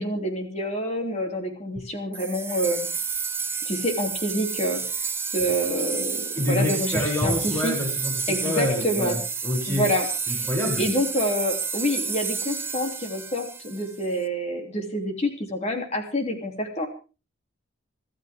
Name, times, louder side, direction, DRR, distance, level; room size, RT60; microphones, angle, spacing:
voice 1, 0.0-2.9 3.7-4.8 5.3-7.7 8.3-9.2 9.7-10.5 10.8-16.9, equal, 30° left, 3 dB, 3.2 m, -27 dB
sound 1, 2.1-14.2, right 5 dB, 10° right, 0.8 m, -30 dB
voice 2, 6.3-9.9 10.3-10.9, left 1 dB, 15° left, 0 dB, 7.4 m, -27 dB
25.5 x 13.0 x 3.7 m, 0.35 s
head